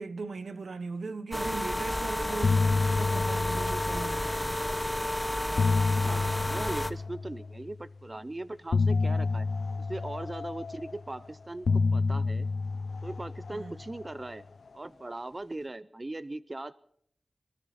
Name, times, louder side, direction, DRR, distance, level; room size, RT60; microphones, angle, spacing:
voice 1, 0.0-4.3 13.5-13.8, right 4 dB, 75° right, 0.8 m, -38 dB
sound 1, 1.3-6.9, left 1 dB, 10° left, 0.9 m, -31 dB
sound 2, 1.8-2.0 2.3-4.6 5.3-7.7 8.7-11.2 11.6-14.2, left 4 dB, 75° left, 0.6 m, -29 dB
voice 2, 6.0-9.5 9.8-12.5 13.0-14.4 14.7-16.8, right 2 dB, 30° right, 0.5 m, -39 dB
24.5 x 13.5 x 4.2 m
wide cardioid pair, 90°, 0 cm